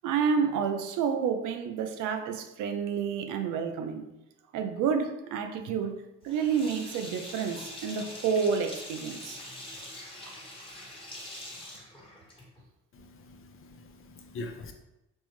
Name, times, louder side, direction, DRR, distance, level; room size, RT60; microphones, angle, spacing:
voice 1, 0.0-4.0 4.5-9.4, right 6 dB, 90° right, 0.5 m, -29 dB
Sink (filling or washing), 6.2-12.6, left 1 dB, 15° left, 1.1 m, -44 dB
voice 2, 12.9-14.7, left 2 dB, 45° left, 0.6 m, -43 dB
5.3 x 2.1 x 3.0 m
cardioid pair, 90°, 30 cm